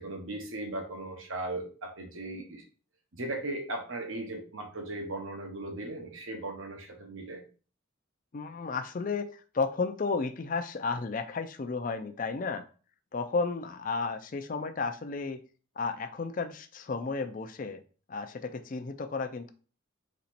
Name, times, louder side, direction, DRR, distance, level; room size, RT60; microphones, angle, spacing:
voice 1, 0.0-2.6 3.1-7.5, right 2 dB, 75° right, 3 dB, 1.1 m, -37 dB
voice 2, 8.3-12.7 13.1-15.4 15.8-17.8 18.1-19.5, left 4 dB, 40° left, 9 dB, 0.4 m, -33 dB
4.2 x 3.0 x 4.1 m, 0.38 s
head